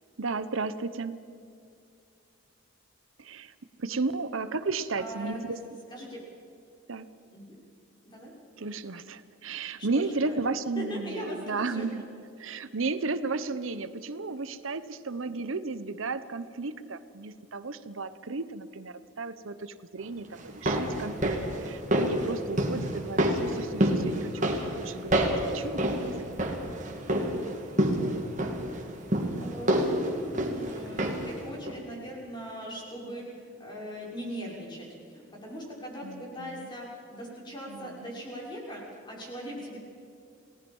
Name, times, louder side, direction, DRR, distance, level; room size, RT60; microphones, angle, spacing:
voice 1, 0.2-1.2 3.2-3.5 3.8-5.6 6.9-7.1 8.6-12.0 12.4-26.5 36.0-36.7 37.7-38.0, right 3 dB, 75° right, 13 dB, 0.9 m, -34 dB
voice 2, 4.9-5.4 5.9-6.2 7.3-7.6 8.0-8.3 9.8-10.5 10.8-11.9 29.4-39.8, equal, 20° left, -3 dB, 6.4 m, -40 dB
sound 1, 20.4-31.4 31.7-31.8, right 1 dB, 35° right, 2.7 m, -28 dB
29.0 x 19.0 x 5.5 m, 2.5 s
head